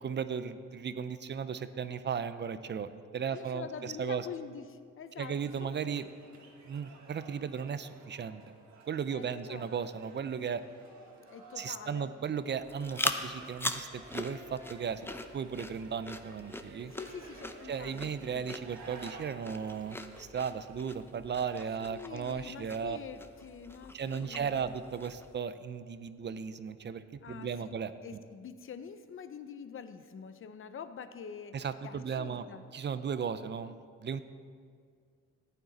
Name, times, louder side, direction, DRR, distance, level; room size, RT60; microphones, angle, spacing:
voice 1, 0.0-4.3 5.2-6.1 6.7-8.4 8.8-10.6 11.6-15.1 15.3-16.9 17.7-23.0 23.9-28.2 31.5-32.4 32.7-33.7 34.0-34.2, right 7 dB, 35° right, 13 dB, 0.6 m, -36 dB
voice 2, 3.3-5.8 9.1-9.7 11.3-12.1 16.9-18.5 21.9-24.6 27.2-27.5 28.0-31.5 31.8-32.6, left 7 dB, 45° left, 11 dB, 0.7 m, -45 dB
sound 1, 5.2-20.2, right 3 dB, 65° right, 1.6 m, -54 dB
sound 2, 12.6-25.4, left 1 dB, 10° left, 0.6 m, -42 dB
14.5 x 9.3 x 4.1 m, 2.1 s
cardioid pair, 90°, 30 cm